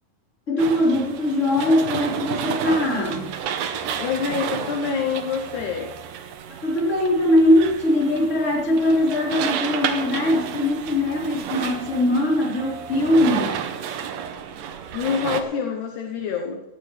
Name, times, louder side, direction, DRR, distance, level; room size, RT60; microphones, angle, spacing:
voice 1, 0.5-3.3 6.5-13.6, left 1 dB, 20° left, -5 dB, 4.5 m, -21 dB
sound 1, 0.6-15.4, right 8 dB, 75° right, 2.5 m, -31 dB
voice 2, 4.0-5.9 14.9-16.6, left 6 dB, 70° left, 2 dB, 2.3 m, -26 dB
18.5 x 14.0 x 3.3 m, 1.1 s
omnidirectional pair, 3.9 m